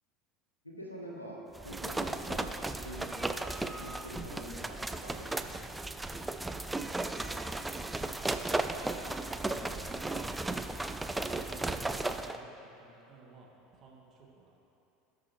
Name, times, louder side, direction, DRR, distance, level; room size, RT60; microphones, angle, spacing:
voice 1, 0.6-1.4 1.6-2.5 2.8-5.6, equal, 85° left, -3 dB, 1.4 m, -46 dB
sound 1, 1.6-12.4, right 2 dB, 10° right, 0.4 m, -35 dB
voice 2, 8.6-10.0 10.5-12.5 12.7-14.6, right 4 dB, 35° right, -3 dB, 1.9 m, -55 dB
18.0 x 6.1 x 3.1 m, 2.9 s
figure-of-eight pair, 70°, 0 cm